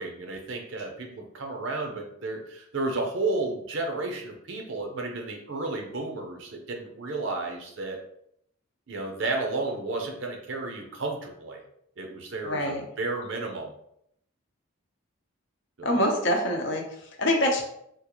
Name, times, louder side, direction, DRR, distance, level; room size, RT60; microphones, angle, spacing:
voice 1, 0.0-8.0 8.9-11.6 12.0-13.7 15.8-16.2, right 2 dB, 60° right, 2 dB, 0.6 m, -32 dB
voice 2, 12.4-12.8 15.8-16.8 17.2-17.6, left 1 dB, 55° left, 1 dB, 0.7 m, -24 dB
3.6 x 2.4 x 3.0 m, 0.72 s
head